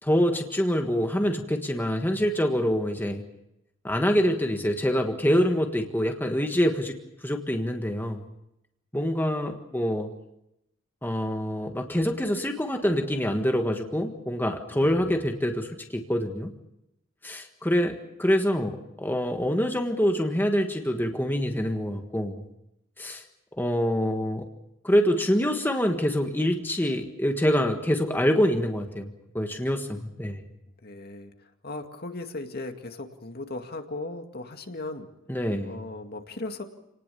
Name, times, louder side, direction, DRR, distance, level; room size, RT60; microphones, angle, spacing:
voice 1, 0.0-3.2 3.8-6.9 7.2-8.2 8.9-10.1 11.0-16.5 17.2-22.4 23.0-23.2 23.6-24.5 24.8-30.4 35.3-35.8, equal, 10° left, 4 dB, 1.5 m, -25 dB
voice 2, 14.7-15.2 30.8-35.1 35.6-36.6, left 2 dB, 50° left, 5 dB, 2.2 m, -37 dB
28.5 x 19.0 x 7.0 m, 0.85 s
head